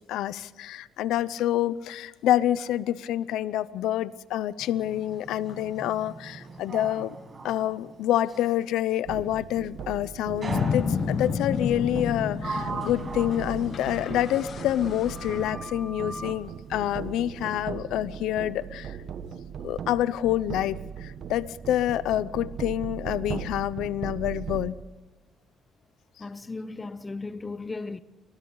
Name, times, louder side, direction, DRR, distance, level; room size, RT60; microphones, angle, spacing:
voice 1, 0.1-7.1 7.4-19.0 19.6-24.8, left 12 dB, 90° left, 0.7 m, -27 dB
Sliding door, 4.6-8.6 10.4-11.3 12.0-14.8 15.1-16.4, right 3 dB, 35° right, 5.9 m, -40 dB
sound 1, 9.0-24.7, right 8 dB, 65° right, 1.1 m, -38 dB
sound 2, 10.5-15.5, left 6 dB, 60° left, 1.2 m, -31 dB
voice 2, 26.2-28.0, left 3 dB, 25° left, 0.9 m, -36 dB
29.0 x 23.0 x 4.0 m
cardioid pair, 90°, 0 cm